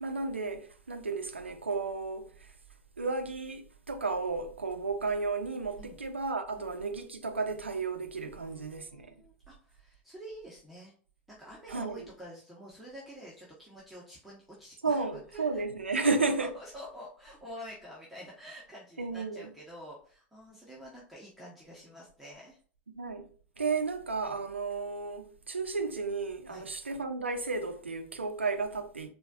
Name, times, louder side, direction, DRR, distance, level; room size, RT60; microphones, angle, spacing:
voice 1, 0.0-2.5 3.0-9.1 11.7-12.1 14.8-16.5 19.0-19.5 22.9-23.3 23.6-29.1, right 4 dB, 90° right, 0.5 m, -33 dB
voice 2, 8.2-10.9 11.4-15.6 15.9-22.6 26.5-26.6, equal, ahead, 1.1 m, -48 dB
4.8 x 2.5 x 2.3 m
figure-of-eight pair, 80°, 6 cm